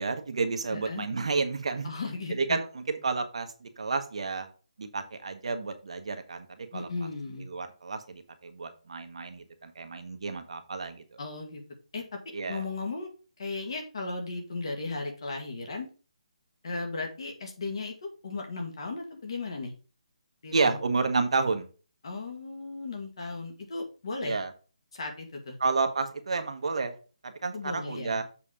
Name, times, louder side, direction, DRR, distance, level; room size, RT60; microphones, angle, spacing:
voice 1, 0.0-1.9 2.4-4.5 4.8-6.9 7.5-11.2 12.3-12.6 20.5-21.7 24.2-24.5 25.6-26.9 27.2-28.2, right 4 dB, 55° right, 7 dB, 1.1 m, -30 dB
voice 2, 0.7-1.1 1.8-2.6 6.7-7.5 11.2-11.6 11.9-12.2 12.5-13.1 13.4-15.9 16.6-19.7 20.4-20.8 22.0-24.4 24.9-25.6 27.5-28.2, left 3 dB, 45° left, 2 dB, 2.0 m, -36 dB
7.2 x 4.1 x 4.9 m, 0.35 s
hypercardioid pair, 175°, 4 cm